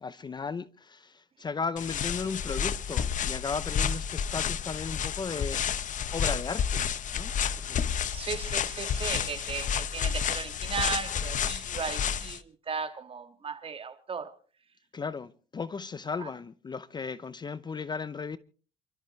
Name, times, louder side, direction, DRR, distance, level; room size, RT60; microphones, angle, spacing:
voice 1, 0.0-5.6 6.1-8.0 14.9-18.4, left 5 dB, 25° left, 0.6 m, -36 dB
sound 1, 1.8-12.4, left 8 dB, 50° left, 0.9 m, -30 dB
voice 2, 8.1-14.4 16.2-16.3, right 6 dB, 35° right, 2.0 m, -36 dB
28.5 x 13.0 x 3.2 m
cardioid pair, 110°, 17 cm